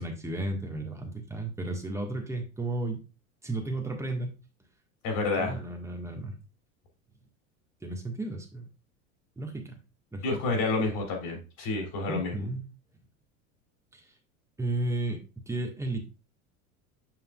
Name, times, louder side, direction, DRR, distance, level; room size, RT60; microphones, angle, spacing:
voice 1, 0.0-3.0 3.4-4.3 5.4-6.3 7.8-8.7 9.4-9.8 10.1-10.6 12.1-12.7 13.9-14.0 14.6-16.0, right 2 dB, 5° right, 2 dB, 1.6 m, -33 dB
voice 2, 5.0-5.6 10.2-12.3, left 3 dB, 50° left, 2 dB, 3.1 m, -29 dB
7.8 x 5.4 x 2.4 m, 0.30 s
hypercardioid pair, 85°, 42 cm